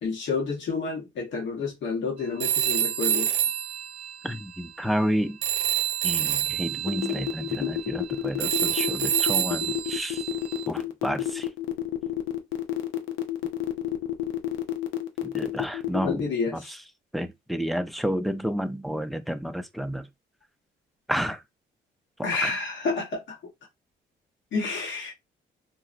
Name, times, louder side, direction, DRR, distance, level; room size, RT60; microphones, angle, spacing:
voice 1, 0.0-3.4 7.6-7.7 16.0-16.7 22.2-23.2 24.5-25.1, left 4 dB, 65° left, 1.1 m, -29 dB
Telephone, 2.4-5.1 5.4-10.7, right 11 dB, 65° right, 0.4 m, -28 dB
voice 2, 4.2-5.4 6.0-10.2 10.7-11.5 15.2-16.8 17.1-20.1 21.1-21.4 22.4-22.5, equal, ahead, 0.4 m, -30 dB
sound 1, 6.9-16.2, left 15 dB, 85° left, 0.5 m, -29 dB
3.9 x 2.0 x 2.5 m
cardioid pair, 90°, 20 cm